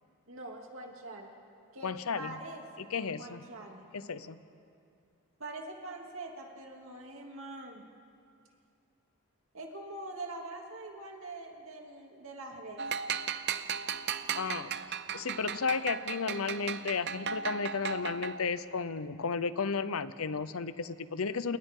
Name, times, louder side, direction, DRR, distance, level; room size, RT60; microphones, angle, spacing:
voice 1, 0.3-1.3 1.7-2.9 3.2-3.9 5.4-7.8 9.5-12.8, right 2 dB, 65° right, 0 dB, 2.8 m, -44 dB
voice 2, 1.8-2.4 2.8-3.5 3.9-4.4 14.3-14.7 15.1-21.6, left 5 dB, 80° left, 14 dB, 0.7 m, -33 dB
sound 1, 12.8-18.6, right 7 dB, 50° right, 0.7 m, -36 dB
29.5 x 29.0 x 3.8 m, 2.5 s
head